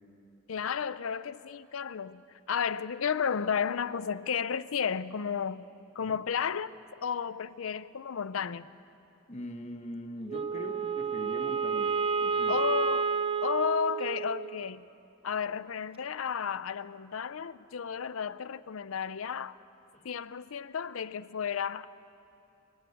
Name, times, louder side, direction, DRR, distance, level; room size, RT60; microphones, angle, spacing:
voice 1, 0.5-5.7 6.0-6.7 7.0-8.7 12.5-13.1 13.4-14.9 15.2-19.6 20.0-21.9, left 7 dB, 75° left, 0.5 m, -32 dB
voice 2, 9.3-12.6 19.9-20.0, left 1 dB, 35° left, 1.3 m, -42 dB
Wind instrument woodwind instrument, 10.3-14.7, right 5 dB, 25° right, 0.4 m, -30 dB
24.5 x 15.0 x 8.4 m
head